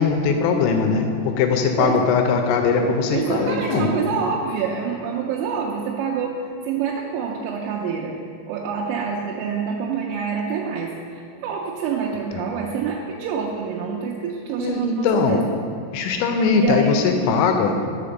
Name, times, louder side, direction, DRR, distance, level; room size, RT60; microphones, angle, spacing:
voice 1, 0.0-3.9 14.6-15.4 15.9-17.7, left 5 dB, 85° left, 4 dB, 2.7 m, -20 dB
voice 2, 3.1-6.4 6.6-8.1 8.5-15.4 16.3-17.4, right 6 dB, 85° right, -2 dB, 2.9 m, -27 dB
6.4 x 5.0 x 6.9 m, 2.4 s
omnidirectional pair, 5.6 m